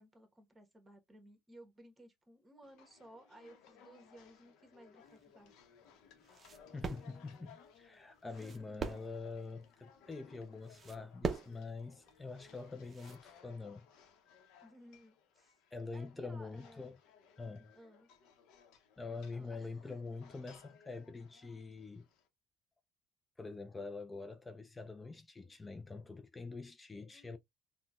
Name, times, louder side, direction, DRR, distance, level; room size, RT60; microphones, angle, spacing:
voice 1, 0.0-5.5 8.2-8.8 14.6-15.6 15.9-16.9 17.7-18.1 19.1-20.0 27.1-27.4, equal, 20° right, 1.1 m, -58 dB
sound 1, 2.6-22.3, left 7 dB, 75° left, 0.7 m, -63 dB
sound 2, 5.0-13.2, right 4 dB, 40° right, 0.5 m, -44 dB
voice 2, 6.7-13.9 15.7-17.0 17.4-17.7 19.0-22.0 23.4-27.4, left 4 dB, 20° left, 0.3 m, -45 dB
3.7 x 2.2 x 2.3 m
supercardioid pair, 70°, 0 cm